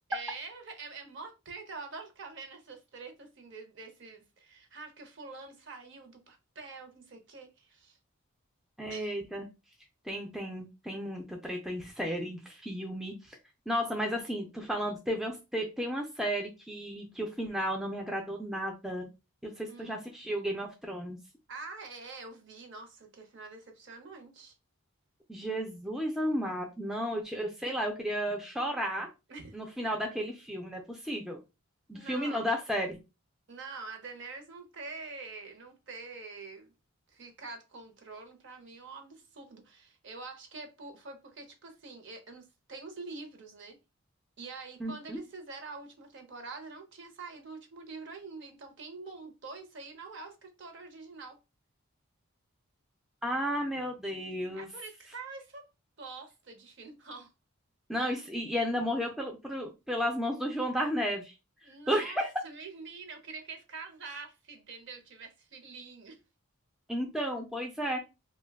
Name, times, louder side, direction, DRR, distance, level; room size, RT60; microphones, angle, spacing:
voice 1, 0.1-8.0 8.9-9.2 19.7-20.0 21.5-24.5 29.3-29.6 31.9-32.5 33.5-36.7 37.1-43.8 44.4-51.4 54.5-55.7 56.0-57.3 60.3-60.4 61.6-62.2 62.4-66.2, right 4 dB, 50° right, 0.7 m, -45 dB
voice 2, 8.8-9.5 10.1-13.4 13.7-19.1 19.4-21.2 25.3-29.1 29.5-31.4 31.9-33.0 44.8-45.2 53.2-54.7 57.9-61.3 61.9-62.3 66.9-68.0, equal, ahead, 0.3 m, -33 dB
2.6 x 2.2 x 3.3 m
head